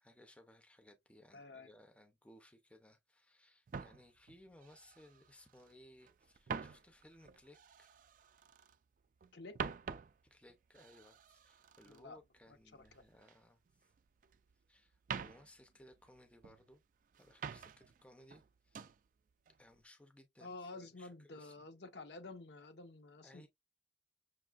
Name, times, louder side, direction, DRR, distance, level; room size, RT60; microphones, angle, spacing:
voice 1, 0.0-8.0 10.2-13.9 14.7-16.8 17.2-18.9 19.6-21.7 23.2-23.5, left 1 dB, 5° left, 0.5 m, -62 dB
voice 2, 1.3-1.7 9.3-9.6 11.8-12.2 12.7-12.8 20.4-23.5, left 3 dB, 65° left, 0.8 m, -50 dB
sound 1, 3.7-5.7 6.0-8.8 9.2-13.4 13.7-14.6 14.9-16.7 17.1-18.0 18.3-19.0 19.5-19.8, right 6 dB, 45° right, 0.3 m, -47 dB
6.2 x 2.6 x 2.4 m
head